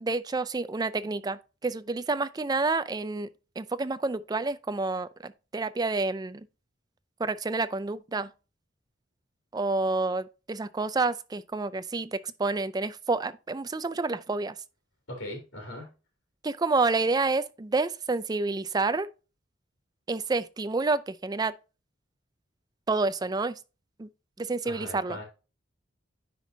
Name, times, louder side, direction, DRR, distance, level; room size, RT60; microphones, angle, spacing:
voice 1, 0.0-3.3 3.6-6.5 7.2-8.3 9.5-14.5 16.4-19.1 20.1-21.5 22.9-23.6 24.0-24.1 24.4-25.2, right 3 dB, 20° right, 0.4 m, -29 dB
voice 2, 15.1-15.9 24.6-25.2, left 1 dB, 80° left, 2.8 m, -39 dB
10.0 x 4.5 x 2.7 m
head